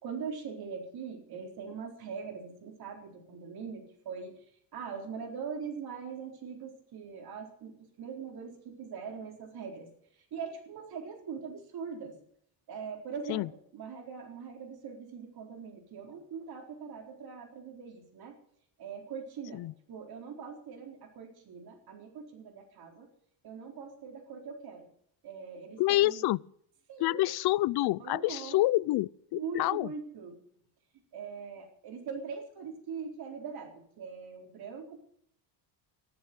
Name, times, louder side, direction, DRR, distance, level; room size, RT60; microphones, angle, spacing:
voice 1, 0.0-4.4 4.7-12.2 12.7-18.3 18.8-19.6 19.9-23.1 23.4-24.9 25.2-26.2 26.9-27.3 28.0-28.6 29.3-30.4 31.1-35.0, right 6 dB, 50° right, 4.1 m, -42 dB
voice 2, 25.8-26.4 27.0-29.9, left 17 dB, 55° left, 0.5 m, -27 dB
14.5 x 11.5 x 7.6 m
cardioid pair, 150°, 46 cm